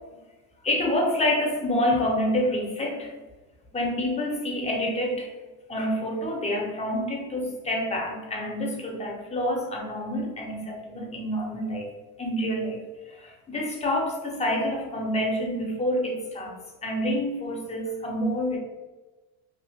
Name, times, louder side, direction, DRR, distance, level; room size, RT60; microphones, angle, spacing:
voice 1, 0.6-3.1 3.7-5.3 5.7-11.9 12.2-12.8 13.1-16.6 16.8-18.6, left 1 dB, 15° left, 0 dB, 0.8 m, -27 dB
2.8 x 2.3 x 3.5 m, 1.2 s
supercardioid pair, 105°, 38 cm